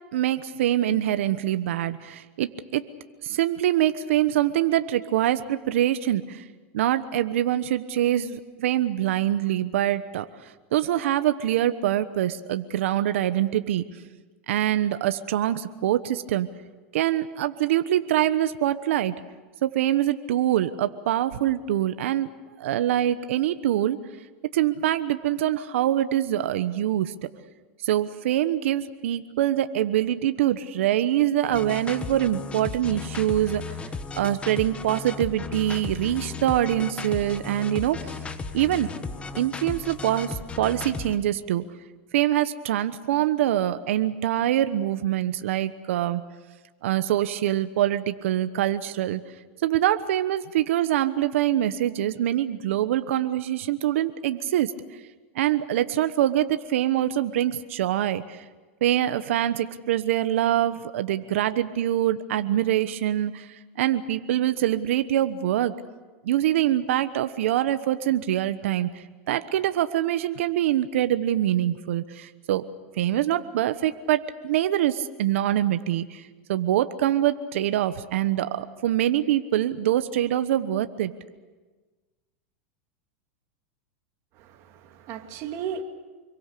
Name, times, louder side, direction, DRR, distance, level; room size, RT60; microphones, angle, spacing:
voice 1, 0.1-2.9 3.2-6.4 6.7-10.2 10.7-13.8 14.5-16.5 16.9-19.1 19.6-22.3 22.6-24.0 24.5-27.1 27.8-33.6 34.2-38.2 38.5-38.9 39.4-41.6 42.1-46.2 46.8-49.2 49.6-54.7 55.3-58.4 58.8-63.5 63.8-65.7 66.2-72.6 73.0-76.2 76.5-81.1, right 12 dB, 75° right, 11 dB, 1.1 m, -24 dB
sound 1, 31.5-41.1, left 4 dB, 15° left, 1.4 m, -35 dB
voice 2, 84.4-85.8, right 7 dB, 45° right, 4 dB, 2.8 m, -35 dB
26.0 x 23.0 x 6.8 m, 1.3 s
supercardioid pair, 130°, 7 cm